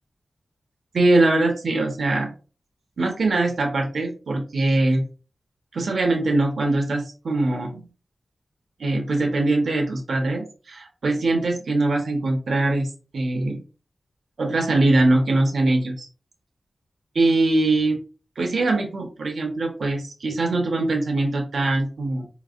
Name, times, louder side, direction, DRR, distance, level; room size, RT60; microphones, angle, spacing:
voice 1, 0.9-2.3 3.0-5.0 5.7-7.8 8.8-13.6 14.4-16.1 17.1-18.0 18.4-22.3, right 2 dB, 70° right, 3 dB, 1.1 m, -22 dB
4.6 x 3.2 x 2.5 m, 0.34 s
wide cardioid pair, 95°, 0 cm